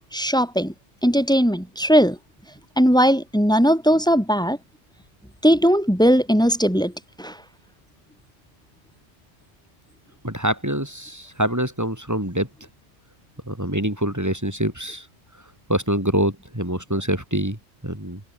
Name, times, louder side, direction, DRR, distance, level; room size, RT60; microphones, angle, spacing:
voice 1, 0.1-0.7 1.0-2.2 2.8-4.6 5.4-6.9 7.2-7.4, equal, 5° left, 5.5 m, -18 dB
voice 2, 10.2-12.5 13.5-15.1 15.7-18.2, right 1 dB, 15° right, 5.7 m, -25 dB
omnidirectional pair, 1.2 m